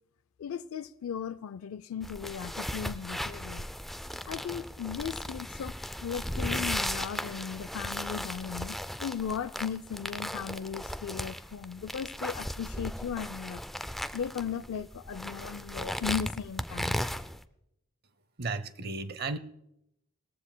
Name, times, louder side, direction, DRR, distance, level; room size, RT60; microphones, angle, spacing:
voice 1, 0.4-3.7 4.3-5.7 6.0-13.6 14.1-17.0, left 7 dB, 90° left, 0.4 m, -37 dB
sound 1, 2.0-17.4, equal, ahead, 0.3 m, -36 dB
voice 2, 18.4-19.4, right 3 dB, 50° right, 0.6 m, -34 dB
19.5 x 14.5 x 2.2 m
head